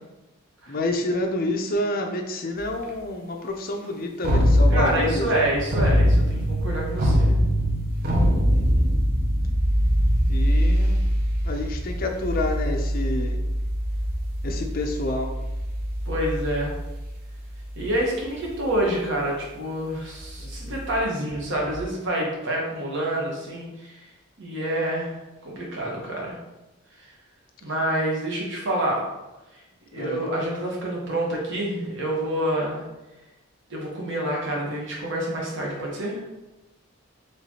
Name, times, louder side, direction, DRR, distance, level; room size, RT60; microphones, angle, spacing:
voice 1, 0.7-5.5 8.5-8.9 10.3-11.0 11.4-13.4 14.4-15.3 20.4-20.8 29.9-30.2, left 1 dB, 45° left, 3 dB, 0.5 m, -29 dB
sound 1, 2.6-2.7 4.2-18.0 18.5-18.8 20.2-21.8, equal, 45° right, 0.6 m, -23 dB
voice 2, 4.7-7.3 16.1-16.7 17.8-24.0 24.4-26.4 27.0-27.1 27.6-29.0 29.9-32.8 33.7-36.2, right 1 dB, 60° right, -3 dB, 1.2 m, -27 dB
4.4 x 3.1 x 2.9 m, 1.0 s
head